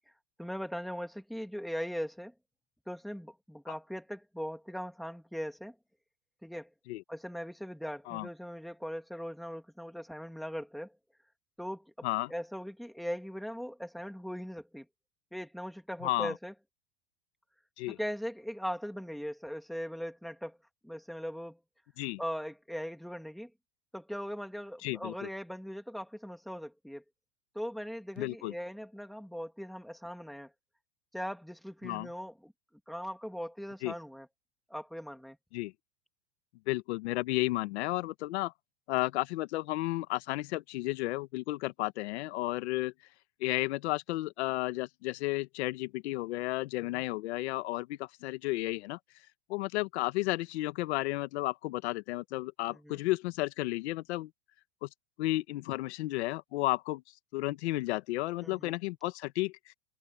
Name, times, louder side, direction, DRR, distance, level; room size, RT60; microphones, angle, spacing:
voice 1, 0.4-2.3 2.9-5.7 6.4-6.7 7.1-10.9 11.6-14.9 15.3-16.5 17.9-20.6 20.8-21.6 22.2-23.5 23.9-27.0 27.5-30.5 31.1-32.5 32.9-34.3 34.7-35.4 52.7-53.0 58.4-58.7, equal, ahead, 2.6 m, -40 dB
voice 2, 16.0-16.3 17.8-18.0 22.0-22.2 24.8-25.3 28.2-28.5 31.8-32.1 33.8-33.9 35.5-35.7 36.7-38.5 38.9-42.9 43.4-49.0 49.5-54.3 54.8-54.9 55.2-57.0 57.3-59.7, left 19 dB, 65° left, 1.4 m, -33 dB
supercardioid pair, 155°, 36 cm